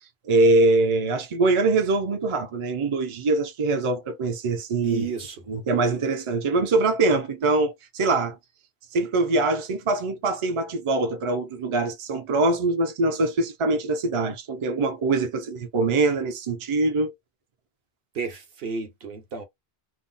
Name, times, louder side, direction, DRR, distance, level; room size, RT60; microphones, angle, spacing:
voice 1, 0.2-5.1 5.5-8.4 8.9-17.1, right 2 dB, 45° right, 0.4 m, -23 dB
voice 2, 4.8-5.4 18.1-19.5, right 5 dB, 70° right, 1.0 m, -32 dB
2.5 x 2.0 x 3.8 m
omnidirectional pair, 1.0 m